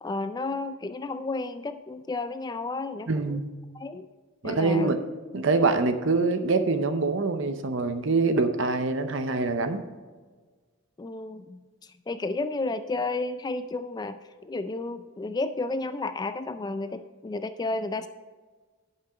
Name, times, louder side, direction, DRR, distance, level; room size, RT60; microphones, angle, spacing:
voice 1, 0.0-3.4 3.7-4.1 4.4-4.9 11.0-14.2 14.4-18.1, left 3 dB, 20° left, 10 dB, 0.3 m, -32 dB
voice 2, 3.1-3.5 4.4-5.0 5.3-9.8, right 3 dB, 65° right, 9 dB, 0.7 m, -25 dB
10.5 x 5.8 x 4.8 m, 1.4 s
head